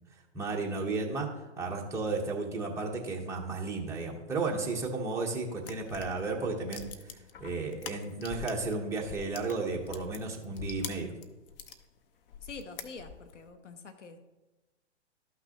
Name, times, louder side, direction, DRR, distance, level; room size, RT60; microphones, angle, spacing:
voice 1, 0.3-6.9 7.4-11.1, right 3 dB, 10° right, -2 dB, 1.0 m, -33 dB
sound 1, 5.6-8.7 9.0-11.8 12.3-13.4, left 7 dB, 50° left, 0.8 m, -44 dB
voice 2, 12.4-14.2, left 4 dB, 85° left, 8 dB, 1.0 m, -46 dB
12.5 x 5.9 x 2.9 m, 1.1 s
hypercardioid pair, 130°, 35 cm